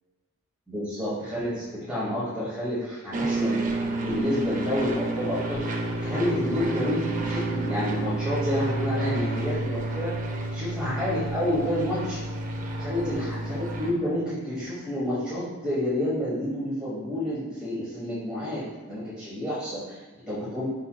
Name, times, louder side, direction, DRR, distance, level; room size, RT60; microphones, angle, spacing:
voice 1, 0.7-3.6 4.0-5.6 6.0-10.2 10.5-12.2 12.8-20.6, left 1 dB, 5° right, -11 dB, 1.0 m, -29 dB
sound 1, 3.1-13.9, right 2 dB, 35° right, 0.4 m, -30 dB
4.6 x 4.5 x 2.2 m, 1.4 s
head